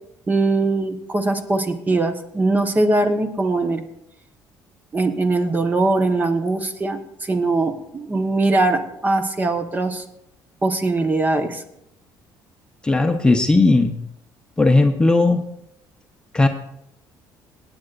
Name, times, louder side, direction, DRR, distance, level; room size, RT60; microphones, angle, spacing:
voice 1, 0.3-3.8 4.9-10.0 10.6-11.6, right 2 dB, 20° right, 7 dB, 1.1 m, -21 dB
voice 2, 12.8-13.9 14.6-15.4 16.3-16.5, left 2 dB, 10° left, 4 dB, 0.8 m, -16 dB
24.0 x 8.9 x 2.5 m, 0.78 s
cardioid pair, 120°, 8 cm